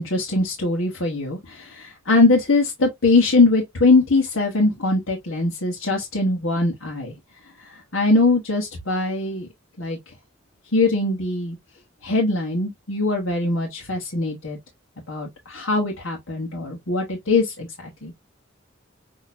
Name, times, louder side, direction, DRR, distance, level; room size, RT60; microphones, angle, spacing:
voice 1, 0.0-7.1 7.9-9.5 9.8-10.0 10.7-11.6 12.0-14.6 15.1-18.1, left 3 dB, 75° left, 1.4 m, -21 dB
6.4 x 3.0 x 2.7 m
head